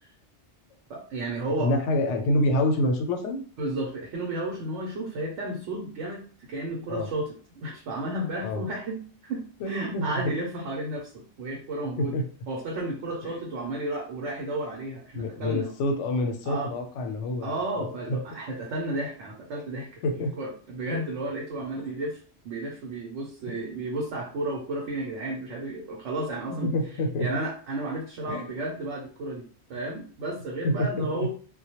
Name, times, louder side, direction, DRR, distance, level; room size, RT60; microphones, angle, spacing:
voice 1, 0.9-1.8 3.6-12.2 12.5-15.7 16.4-16.7 17.4-22.2 22.4-26.7 27.2-31.3, right 2 dB, 85° right, -1 dB, 0.9 m, -33 dB
voice 2, 1.6-3.4 6.9-7.1 8.4-8.6 9.6-10.3 12.0-12.2 13.2-13.4 15.2-18.2 20.0-20.3 21.8-22.0 23.5-23.7 26.5-27.3 28.3-28.5 30.6-31.3, left 1 dB, 85° left, 4 dB, 0.9 m, -27 dB
2.2 x 2.1 x 2.8 m, 0.41 s
omnidirectional pair, 1.2 m